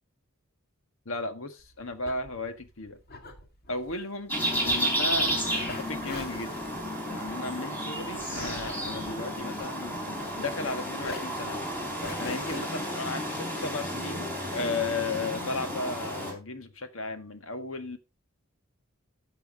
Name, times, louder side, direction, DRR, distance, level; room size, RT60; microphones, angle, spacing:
voice 1, 1.0-3.0 3.7-4.3 4.6-5.3 5.7-6.5 7.0-11.7 12.2-18.0, left 3 dB, 70° left, 1.6 m, -35 dB
sound 1, 1.6-10.7 11.0-12.6, left 2 dB, 50° left, 2.0 m, -43 dB
sound 2, 4.3-16.3, equal, 10° left, 4.0 m, -32 dB
13.0 x 7.2 x 4.0 m
head